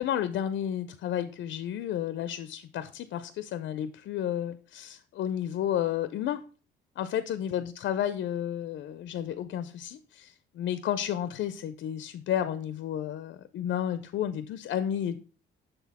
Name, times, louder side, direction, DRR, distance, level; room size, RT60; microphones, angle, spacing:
voice 1, 0.0-6.4 7.0-15.2, left 10 dB, 65° left, 12 dB, 0.4 m, -32 dB
6.6 x 4.0 x 4.1 m, 0.38 s
cardioid pair, 90°, 20 cm